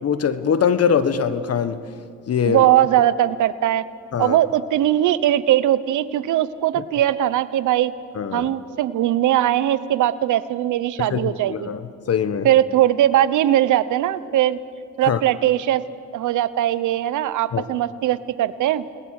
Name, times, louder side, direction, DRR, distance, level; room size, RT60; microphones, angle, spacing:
voice 1, 0.0-1.8 2.3-2.7 4.1-4.4 8.1-8.5 11.0-11.8 12.1-12.5 15.0-15.2 17.5-17.6, left 7 dB, 55° left, 12 dB, 1.4 m, -22 dB
voice 2, 2.5-3.8 4.2-7.9 8.3-11.7 12.4-14.6 15.0-15.8 16.1-18.8, right 12 dB, 80° right, 15 dB, 1.0 m, -20 dB
29.0 x 21.0 x 6.6 m, 2.3 s
cardioid pair, 90°, 30 cm